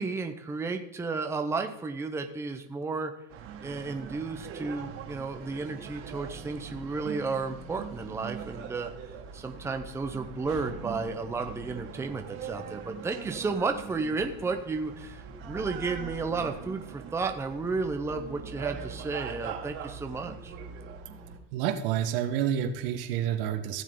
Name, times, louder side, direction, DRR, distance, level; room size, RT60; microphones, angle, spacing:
voice 1, 0.0-3.1 3.6-8.9 9.3-20.5, right 4 dB, 10° right, 5 dB, 0.8 m, -33 dB
sound 1, 3.3-21.4, right 6 dB, 45° right, 2.1 m, -42 dB
voice 2, 21.5-23.8, right 9 dB, 70° right, 7 dB, 1.5 m, -29 dB
16.0 x 7.3 x 3.8 m, 0.88 s
supercardioid pair, 135°, 29 cm